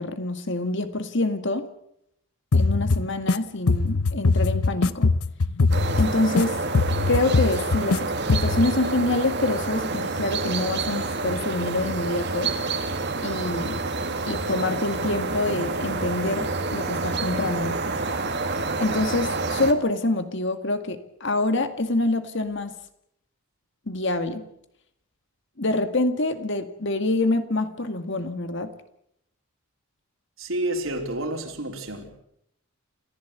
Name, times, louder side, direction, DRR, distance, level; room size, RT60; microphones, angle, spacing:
voice 1, 0.0-1.7 2.5-5.1 6.0-6.6 7.1-12.5 13.2-13.8 14.3-17.8 18.8-22.7 23.9-24.4 25.6-28.7, left 2 dB, 55° left, 2.0 m, -26 dB
sound 1, 2.5-3.4 3.7-6.4 6.7-8.0 8.3-8.7, left 3 dB, 90° left, 0.9 m, -21 dB
sound 2, 5.7-19.7, right 3 dB, 50° right, 2.0 m, -28 dB
voice 2, 30.4-32.2, right 1 dB, 65° right, 4.1 m, -29 dB
27.5 x 15.0 x 8.3 m
head